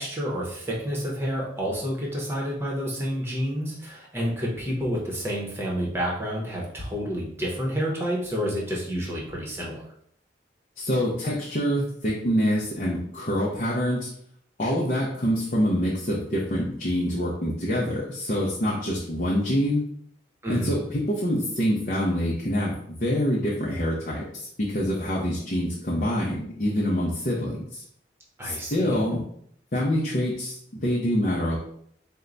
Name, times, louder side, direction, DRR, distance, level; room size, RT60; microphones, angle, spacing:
voice 1, 0.0-9.8 20.4-20.8 28.4-29.0, equal, 15° right, -3 dB, 0.9 m, -29 dB
voice 2, 10.8-14.1 14.6-19.8 20.5-27.8 28.4-29.2 29.7-30.5 30.8-31.6, equal, 45° left, -4 dB, 0.7 m, -26 dB
4.5 x 2.2 x 3.9 m, 0.67 s
head